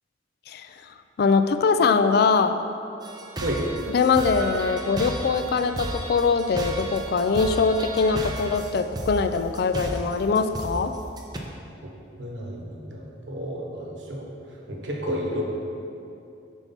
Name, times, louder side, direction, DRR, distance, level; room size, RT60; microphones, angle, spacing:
voice 1, 1.2-2.6 3.9-10.9, left 4 dB, 55° left, 9 dB, 0.3 m, -22 dB
sound 1, 3.0-11.4, right 1 dB, 20° right, 0.5 m, -33 dB
voice 2, 12.2-14.3 14.7-15.4, equal, 70° right, -1 dB, 1.1 m, -31 dB
5.4 x 4.5 x 5.7 m, 2.7 s
head